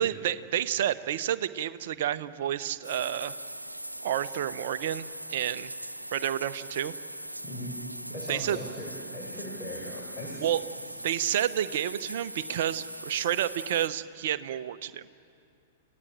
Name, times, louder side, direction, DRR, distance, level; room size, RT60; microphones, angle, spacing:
voice 1, 0.0-3.3 4.0-5.7 6.1-6.9 8.3-8.6 10.4-10.6 11.0-15.0, right 11 dB, 55° right, 13 dB, 0.9 m, -30 dB
sound 1, 2.8-13.9, right 1 dB, 90° right, 0.5 m, -40 dB
voice 2, 7.4-7.8 8.1-8.9 9.1-10.5, left 1 dB, 20° left, -2 dB, 5.9 m, -39 dB
30.0 x 17.0 x 8.9 m, 2.6 s
figure-of-eight pair, 100°, 0 cm